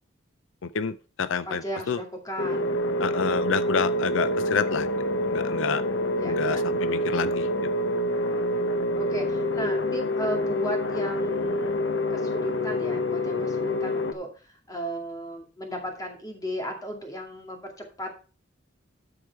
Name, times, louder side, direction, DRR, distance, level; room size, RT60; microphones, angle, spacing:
voice 1, 0.6-2.0 3.0-4.9 5.2-5.8 6.2-7.5, left 6 dB, 80° left, 13 dB, 0.5 m, -28 dB
voice 2, 1.5-2.7 6.1-6.6 9.0-11.7 12.1-18.2, right 1 dB, 20° left, 2 dB, 2.2 m, -35 dB
sound 1, 2.4-14.1, left 1 dB, 65° left, 1.0 m, -27 dB
12.5 x 4.8 x 4.6 m, 0.36 s
head